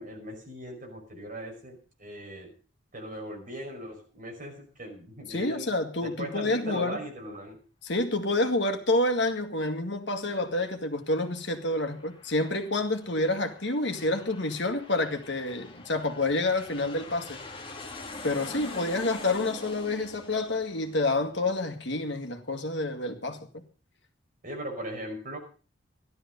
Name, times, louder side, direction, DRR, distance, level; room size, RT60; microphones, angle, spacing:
voice 1, 0.0-2.5 2.9-5.7 6.0-7.6 24.4-25.4, right 1 dB, 40° right, 5.5 m, -39 dB
voice 2, 5.3-7.0 7.8-17.4 18.2-23.6, left 2 dB, 60° left, 2.0 m, -28 dB
Aircraft, 11.0-22.2, left 2 dB, 25° left, 2.0 m, -45 dB
15.0 x 12.5 x 5.3 m
head